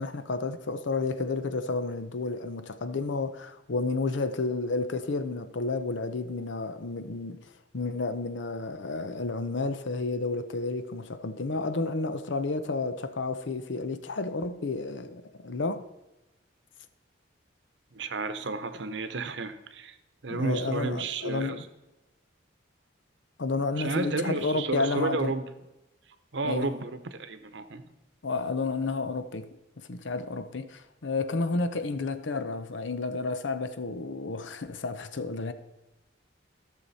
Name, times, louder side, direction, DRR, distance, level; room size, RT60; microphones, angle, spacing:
voice 1, 0.0-15.9 20.3-21.6 23.4-25.3 26.4-26.7 28.2-35.5, left 3 dB, 80° left, 0.7 m, -31 dB
voice 2, 17.9-20.0 20.2-21.7 23.8-25.4 26.3-27.9, right 3 dB, 70° right, 0.8 m, -32 dB
14.5 x 6.6 x 4.2 m
head